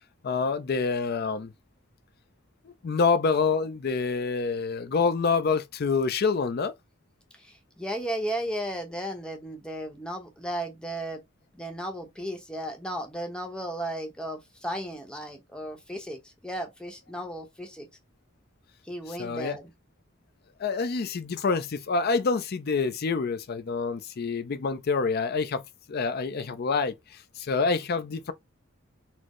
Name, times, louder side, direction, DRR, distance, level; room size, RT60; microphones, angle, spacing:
voice 1, 0.2-1.5 2.6-6.7 19.1-19.6 20.6-25.6 25.9-26.9 27.4-28.3, left 4 dB, 50° left, 0.4 m, -27 dB
voice 2, 7.3-11.2 11.5-17.9 18.8-19.7, right 1 dB, 5° left, 0.8 m, -35 dB
4.3 x 2.0 x 3.0 m
head